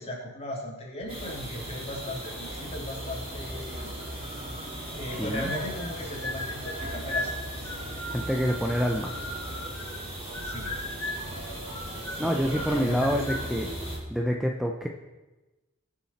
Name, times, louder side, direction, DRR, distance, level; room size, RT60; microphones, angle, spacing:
voice 1, 0.0-3.9 4.6-7.7 10.4-10.8 12.1-13.2, left 1 dB, 30° left, -2 dB, 3.4 m, -38 dB
sound 1, 1.0-14.0, right 2 dB, 60° right, 1.1 m, -48 dB
sound 2, 1.1-14.0, right 1 dB, 30° right, 4.0 m, -38 dB
voice 2, 5.2-5.5 8.1-9.2 12.2-13.7 14.1-14.9, equal, ahead, 1 dB, 0.7 m, -27 dB
sound 3, 5.3-5.9 6.2-10.0 10.3-11.3 11.7-13.5, left 1 dB, 15° left, 4.5 m, -37 dB
21.0 x 7.4 x 4.3 m, 1.1 s
head